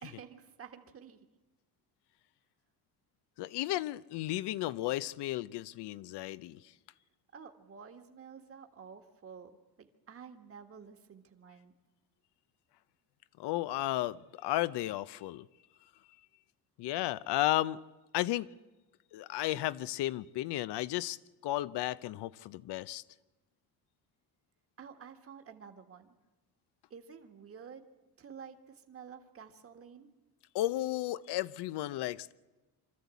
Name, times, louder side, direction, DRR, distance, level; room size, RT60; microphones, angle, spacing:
voice 1, 0.0-1.2 7.3-11.7 24.8-26.1 26.9-27.8 28.2-30.1, right 6 dB, 35° right, 1.6 m, -51 dB
voice 2, 3.4-6.6 13.4-15.5 16.8-17.8 18.1-18.5 19.1-21.2 21.4-23.0 30.5-32.3, left 15 dB, 80° left, 0.7 m, -33 dB
25.0 x 13.0 x 8.3 m
cardioid pair, 120°, 40 cm